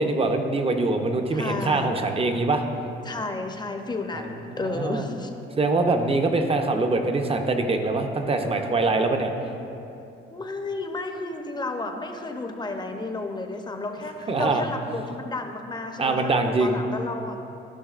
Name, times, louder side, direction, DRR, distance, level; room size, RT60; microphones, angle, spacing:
voice 1, 0.0-2.6 4.1-4.3 4.5-5.1 5.6-9.3 14.3-14.6 16.0-16.8, right 3 dB, 30° right, 5 dB, 0.7 m, -23 dB
voice 2, 1.3-2.0 3.0-5.3 10.3-17.4, left 2 dB, 20° left, 5 dB, 0.7 m, -32 dB
13.5 x 5.8 x 2.5 m, 2.8 s
cardioid pair, 90°, 20 cm